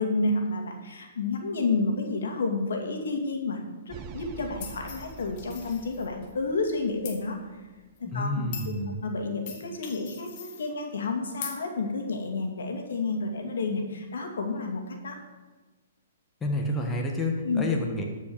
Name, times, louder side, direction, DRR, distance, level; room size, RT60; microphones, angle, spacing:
voice 1, 0.0-7.6 8.0-8.4 9.0-15.2 17.4-17.6, left 3 dB, 80° left, 3 dB, 2.3 m, -30 dB
sound 1, 3.9-8.2, right 6 dB, 30° right, 0.9 m, -46 dB
sound 2, 4.6-6.3 7.0-7.2 8.0-8.1 8.5-8.7 9.5-10.7 11.4-11.6, left 7 dB, 45° left, 1.9 m, -41 dB
voice 2, 8.0-9.0 16.4-18.0, left 1 dB, 15° left, 0 dB, 1.6 m, -29 dB
13.0 x 5.4 x 7.0 m, 1.3 s
hypercardioid pair, 145°, 0 cm